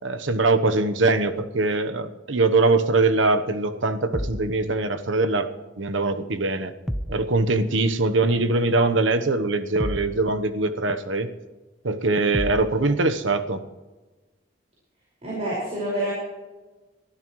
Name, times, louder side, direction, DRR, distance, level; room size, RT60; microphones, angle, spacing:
voice 1, 0.0-5.5 5.8-6.7 7.1-11.3 11.8-13.6, right 3 dB, 90° right, 9 dB, 1.0 m, -22 dB
sound 1, 4.1-4.5 6.9-7.2 9.8-10.2 12.3-12.7, equal, ahead, 0.8 m, -29 dB
voice 2, 15.2-16.1, right 1 dB, 35° right, -5 dB, 5.4 m, -27 dB
23.0 x 13.5 x 3.1 m, 1.2 s
head